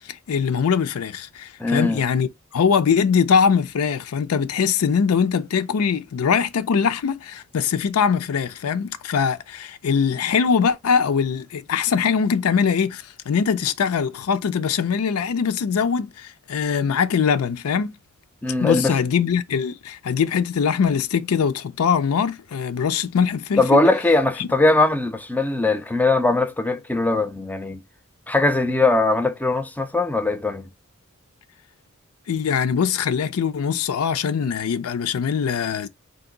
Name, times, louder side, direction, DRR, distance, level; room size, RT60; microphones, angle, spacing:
voice 1, 0.0-17.9 18.6-23.8 24.4-24.5 32.3-35.9, left 6 dB, 90° left, 0.4 m, -22 dB
voice 2, 1.6-2.0 18.4-19.0 23.6-27.8 28.3-30.7, left 2 dB, 10° left, 0.4 m, -20 dB
3.9 x 2.6 x 3.7 m
head